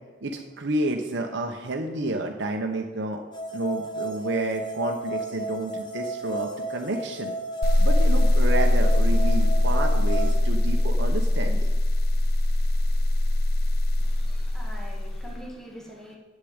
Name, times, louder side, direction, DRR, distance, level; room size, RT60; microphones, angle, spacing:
voice 1, 0.2-3.2 3.5-7.3 7.8-11.7, right 2 dB, 60° right, 3 dB, 1.0 m, -30 dB
sound 1, 3.3-10.3, right 2 dB, 25° left, 1.3 m, -34 dB
sound 2, 7.6-15.4, left 1 dB, 50° left, 0.6 m, -21 dB
voice 2, 14.0-16.2, equal, 5° left, -2 dB, 1.7 m, -44 dB
8.4 x 7.4 x 8.9 m, 1.4 s
head